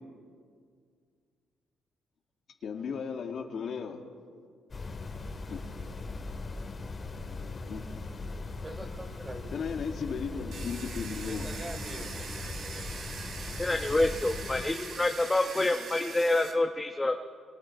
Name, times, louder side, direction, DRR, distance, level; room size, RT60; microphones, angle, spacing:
voice 1, 2.6-4.0 5.5-5.7 7.3-7.9 9.5-11.5, left 6 dB, 60° left, 3 dB, 2.0 m, -36 dB
sound 1, 4.7-14.6, left 3 dB, 35° left, 2.2 m, -39 dB
voice 2, 8.6-9.6 11.2-13.0, right 1 dB, 20° right, 4 dB, 3.4 m, -44 dB
Domestic sounds home sounds, 10.5-16.5, right 5 dB, 65° right, 3.0 m, -42 dB
voice 3, 13.6-17.2, left 2 dB, 15° left, 4 dB, 1.0 m, -27 dB
28.0 x 24.5 x 4.7 m, 2.1 s
cardioid pair, 90°, 0 cm